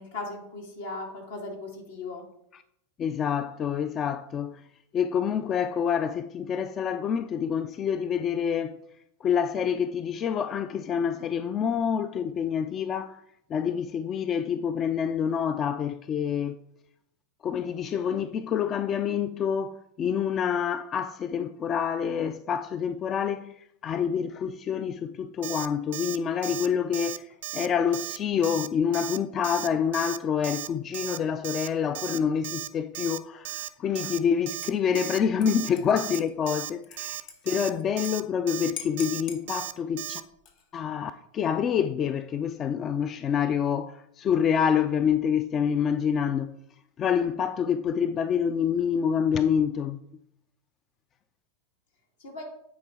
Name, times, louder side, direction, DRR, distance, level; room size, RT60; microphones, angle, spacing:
voice 1, 0.0-2.2 35.7-35.8 37.5-37.7 52.2-52.4, left 2 dB, 80° left, 2.1 m, -38 dB
voice 2, 3.0-4.6 4.9-8.8 9.2-13.2 13.5-16.6 17.4-23.5 23.8-27.3 27.5-40.2 40.7-46.5 47.0-50.0, left 7 dB, 35° left, 0.3 m, -27 dB
Alarm, 25.4-25.7 25.9-26.2 26.4-26.7 26.9-27.2 27.4-27.7 27.9-28.2 28.4-28.7 28.9-29.2 29.4-29.7 29.9-30.2 30.4-30.7 30.9-31.2 31.4-31.7 31.9-32.2 32.4-32.7 32.9-33.2 33.5-33.7 34.0-34.2 34.5-34.7 35.0-35.2 35.5-35.7 36.0-36.2 36.5-36.7 37.0-37.2 37.5-37.7 38.0-38.2 38.5-38.7 39.0-39.2 39.5-39.7 40.0-40.2, right 14 dB, 65° right, 0.4 m, -35 dB
Dishes pots and pans / Liquid, 34.0-34.3 34.6-38.1 38.4-38.5 38.8-39.4 40.3-40.8, left 8 dB, 60° left, 1.3 m, -45 dB
9.4 x 4.3 x 3.6 m
hypercardioid pair, 105°, 0 cm